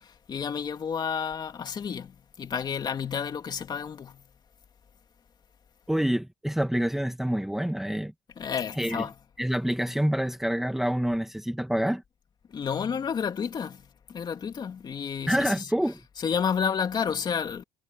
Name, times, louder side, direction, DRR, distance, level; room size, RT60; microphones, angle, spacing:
voice 1, 0.3-2.1 2.4-4.2 8.4-9.1 12.5-13.8 14.1-15.7 16.2-17.6, left 7 dB, 35° left, 2.9 m, -30 dB
voice 2, 5.9-8.1 8.8-9.0 9.4-12.0 15.3-16.0, equal, 5° right, 1.2 m, -27 dB
cardioid pair, 130°, 12 cm